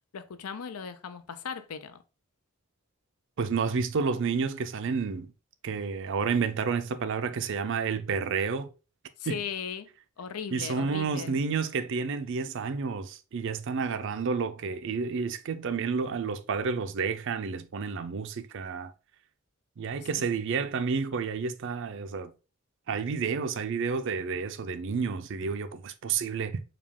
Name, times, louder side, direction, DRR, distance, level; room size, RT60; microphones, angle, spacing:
voice 1, 0.1-2.0 9.2-9.9 10.2-11.3 20.2-20.3, left 7 dB, 85° left, 0.5 m, -37 dB
voice 2, 3.4-5.3 5.6-8.7 9.3-9.4 10.5-18.9 19.8-22.3 22.9-26.6, right 5 dB, 55° right, 0.4 m, -30 dB
5.0 x 2.3 x 3.5 m
head